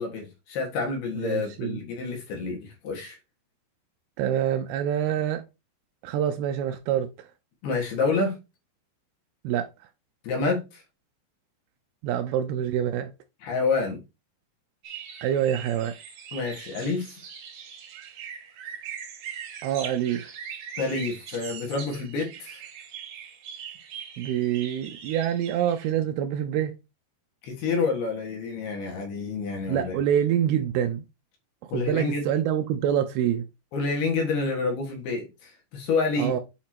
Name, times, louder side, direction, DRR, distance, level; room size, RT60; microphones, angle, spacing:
voice 1, 0.0-3.2 7.6-8.4 10.2-10.8 13.4-14.0 16.3-17.1 20.8-22.6 27.4-29.9 31.7-32.3 33.7-36.3, left 4 dB, 70° left, 3.3 m, -28 dB
voice 2, 1.2-1.8 4.2-5.4 6.0-7.1 9.4-9.7 12.0-13.1 15.2-15.9 19.6-20.2 24.2-26.7 29.7-31.0 31.7-33.5 36.2-36.4, right 10 dB, 85° right, 2.2 m, -26 dB
sound 1, 14.8-25.9, right 8 dB, 60° right, 2.5 m, -41 dB
8.5 x 2.9 x 4.3 m
omnidirectional pair, 5.0 m